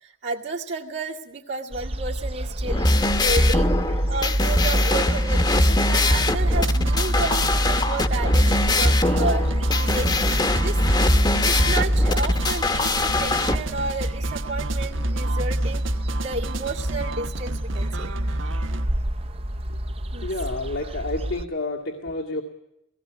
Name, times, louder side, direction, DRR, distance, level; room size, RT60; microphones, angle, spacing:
voice 1, 0.0-3.7 4.1-9.4 9.8-10.8 11.2-15.8 16.2-18.1 20.1-20.3, right 3 dB, 65° right, -1 dB, 2.0 m, -32 dB
sound 1, 1.7-21.4, equal, 30° right, 0.8 m, -25 dB
sound 2, 2.6-13.6, left 2 dB, 20° left, 1.1 m, -22 dB
sound 3, 5.9-18.9, right 3 dB, 85° right, 1.2 m, -35 dB
voice 2, 20.2-22.4, left 2 dB, 80° left, 0 dB, 2.1 m, -29 dB
17.5 x 17.5 x 9.2 m, 0.86 s
head